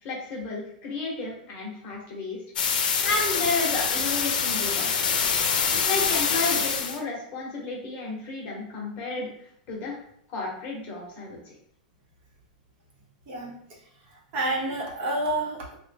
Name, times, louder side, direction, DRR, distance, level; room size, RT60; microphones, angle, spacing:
voice 1, 0.0-2.4 3.0-5.0 5.9-9.3 9.7-10.0 10.3-11.4, left 3 dB, 35° left, -2 dB, 0.9 m, -32 dB
sound 1, 2.6-7.0, left 6 dB, 85° left, 0.5 m, -25 dB
voice 2, 14.3-15.8, right 1 dB, 40° right, -2 dB, 0.9 m, -29 dB
3.1 x 2.1 x 3.4 m, 0.69 s
supercardioid pair, 150°, 5 cm